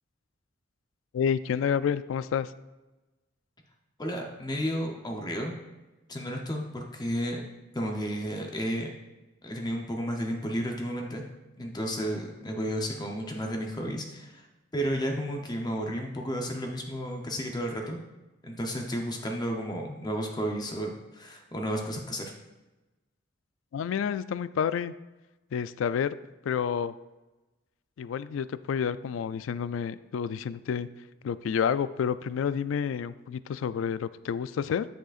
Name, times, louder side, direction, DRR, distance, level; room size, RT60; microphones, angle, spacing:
voice 1, 1.1-2.5 23.7-24.9 25.5-26.2 26.4-26.9 28.0-30.9 31.2-34.9, left 7 dB, 75° left, 15 dB, 0.3 m, -29 dB
voice 2, 4.0-5.5 6.1-7.4 7.7-8.9 9.4-11.2 11.6-14.5 14.7-18.0 18.4-22.3, equal, 20° left, 2 dB, 0.7 m, -32 dB
10.0 x 6.4 x 2.4 m, 1.1 s
head